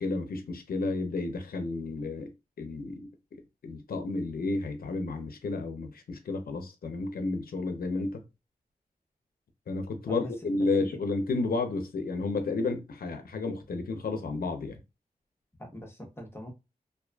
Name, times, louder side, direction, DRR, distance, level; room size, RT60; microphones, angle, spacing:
voice 1, 0.0-2.3 2.6-3.1 3.6-8.2 9.7-14.8, left 3 dB, 85° left, 0.6 m, -31 dB
voice 2, 10.1-10.5 10.8-11.0 15.6-16.5, equal, 15° left, 0.9 m, -42 dB
2.5 x 2.4 x 2.2 m
cardioid pair, 60°, 15 cm